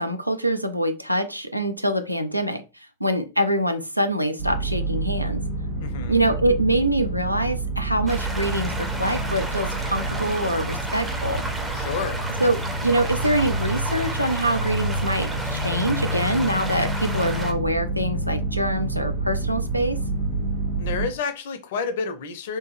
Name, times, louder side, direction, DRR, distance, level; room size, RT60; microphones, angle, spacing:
voice 1, 0.0-2.6 3.0-5.4 6.1-11.4 12.4-12.6 12.8-20.0, right 1 dB, 90° right, 0.4 m, -24 dB
sound 1, 4.4-21.1, right 2 dB, 70° right, 0.9 m, -28 dB
voice 2, 5.8-6.2 11.7-12.2 20.8-22.6, left 5 dB, 55° left, 0.5 m, -30 dB
sound 2, 8.1-17.5, right 1 dB, 10° right, 0.5 m, -33 dB
2.8 x 2.2 x 3.2 m
figure-of-eight pair, 90°, 0 cm